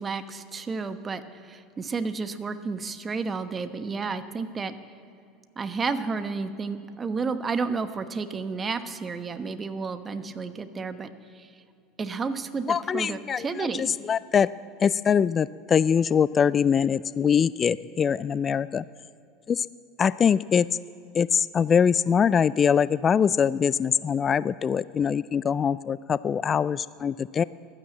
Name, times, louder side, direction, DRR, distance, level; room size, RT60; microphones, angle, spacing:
voice 1, 0.0-4.7 5.6-11.1 11.3-11.5 12.0-13.9, right 4 dB, 25° right, 10 dB, 1.1 m, -31 dB
voice 2, 12.7-14.5 14.8-18.8 19.5-19.7 20.0-20.7 21.1-27.4, left 7 dB, 35° left, 18 dB, 0.3 m, -23 dB
15.5 x 12.0 x 7.5 m, 2.5 s
hypercardioid pair, 80°, 0 cm